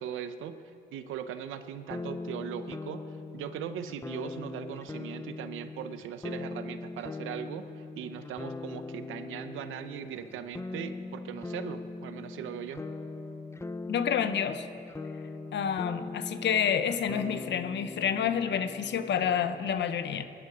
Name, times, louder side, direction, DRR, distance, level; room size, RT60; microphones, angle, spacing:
voice 1, 0.0-3.0 3.3-12.9, right 9 dB, 85° right, 10 dB, 0.8 m, -39 dB
sound 1, 1.9-19.7, left 3 dB, 15° left, 0.5 m, -41 dB
voice 2, 13.9-14.7 15.5-20.2, left 8 dB, 65° left, 10 dB, 0.9 m, -29 dB
20.5 x 11.0 x 5.0 m, 2.5 s
cardioid pair, 90°, 20 cm